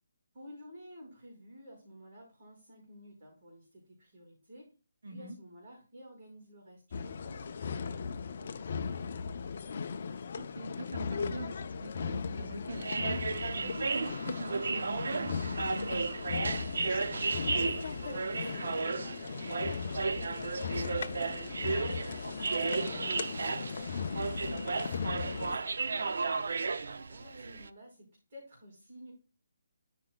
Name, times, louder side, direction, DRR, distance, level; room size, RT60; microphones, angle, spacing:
voice 1, 0.3-4.6 5.0-9.9 17.1-26.7 27.1-29.1, equal, 30° right, -3 dB, 5.0 m, -52 dB
voice 2, 5.0-5.3 10.3-13.2 13.5-16.1 22.9-23.1, right 2 dB, 75° right, 4 dB, 2.4 m, -42 dB
sound 1, 6.9-25.6, left 5 dB, 40° left, 0.5 m, -37 dB
sound 2, 12.7-27.7, right 4 dB, 60° right, 0.6 m, -34 dB
13.5 x 6.0 x 2.2 m, 0.34 s
hypercardioid pair, 175°, 0 cm